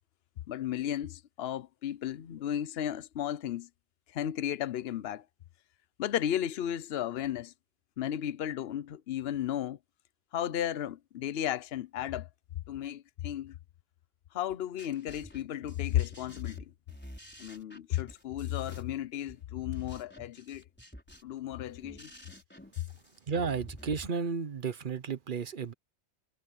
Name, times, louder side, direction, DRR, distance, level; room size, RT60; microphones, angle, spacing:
voice 1, 0.5-3.7 4.1-5.2 6.0-7.5 8.0-9.8 10.3-12.3 12.7-13.5 14.3-16.7 17.4-20.6 21.2-22.1, left 11 dB, 65° left, 0.9 m, -34 dB
sound 1, 14.5-24.1, equal, 10° left, 4.8 m, -51 dB
voice 2, 23.3-25.7, right 5 dB, 50° right, 1.0 m, -33 dB
omnidirectional pair, 1.2 m